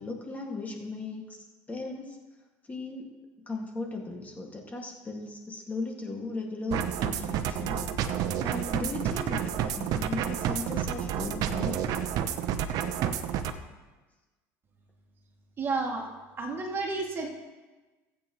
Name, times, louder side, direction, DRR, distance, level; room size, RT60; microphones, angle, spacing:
voice 1, 0.0-2.2 2.7-3.2 3.5-7.8 8.4-12.0, left 3 dB, 20° left, 0 dB, 1.9 m, -37 dB
sound 1, 6.7-13.5, right 9 dB, 60° right, 0.8 m, -30 dB
voice 2, 15.6-16.1 16.4-17.3, right 3 dB, 35° right, 0 dB, 2.2 m, -31 dB
19.0 x 8.5 x 3.1 m, 1.2 s
supercardioid pair, 100°, 7 cm